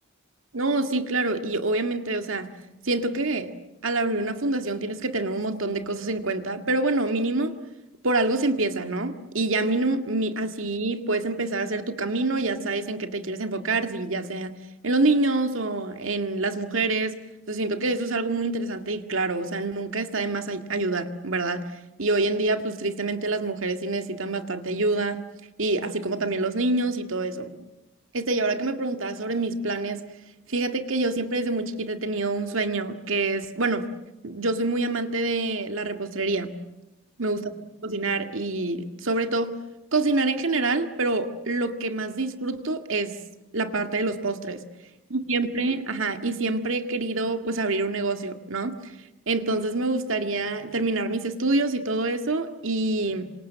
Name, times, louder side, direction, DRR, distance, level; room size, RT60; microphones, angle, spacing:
voice 1, 0.5-2.5 2.8-3.5 3.8-7.5 8.0-14.6 14.8-17.2 17.5-21.6 22.0-25.2 25.6-27.7 28.1-30.0 30.5-33.9 34.2-36.5 37.2-37.6 37.8-39.6 39.9-43.2 43.5-44.6 45.1-48.8 49.3-53.3, right 2 dB, 80° right, 7 dB, 2.0 m, -26 dB
27.5 x 26.0 x 7.5 m, 0.97 s
head